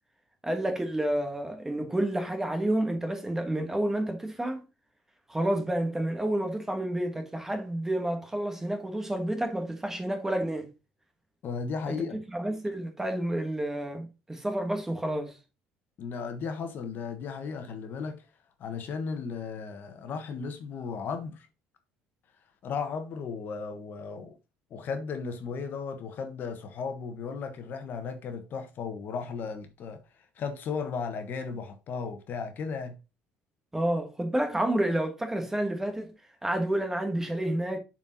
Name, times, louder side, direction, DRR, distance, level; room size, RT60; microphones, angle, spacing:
voice 1, 0.4-4.6 5.3-10.7 11.9-12.1 12.3-15.4 33.7-36.1 36.4-37.8, right 1 dB, 10° right, 1.3 m, -29 dB
voice 2, 11.4-12.2 16.0-18.2 18.6-21.5 22.6-24.3 24.7-30.0 30.4-33.0, left 5 dB, 50° left, 1.3 m, -35 dB
6.9 x 4.5 x 4.0 m
cardioid pair, 120°, 4 cm